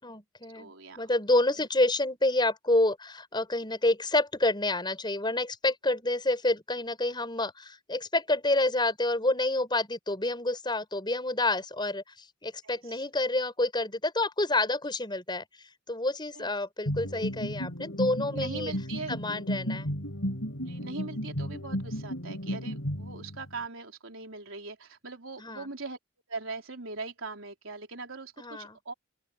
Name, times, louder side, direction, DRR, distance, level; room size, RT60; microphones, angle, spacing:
voice 1, 0.0-15.4 15.9-18.7 19.1-19.9 25.4-25.7 28.4-28.8, left 2 dB, 25° left, 5.3 m, -28 dB
voice 2, 0.5-1.0 1.6-1.7 12.6-13.0 16.3-16.5 18.3-19.1 20.6-26.0 26.3-28.9, right 3 dB, 85° right, 3.9 m, -41 dB
sound 1, 16.9-23.6, equal, 80° left, 5.5 m, -34 dB
open air
head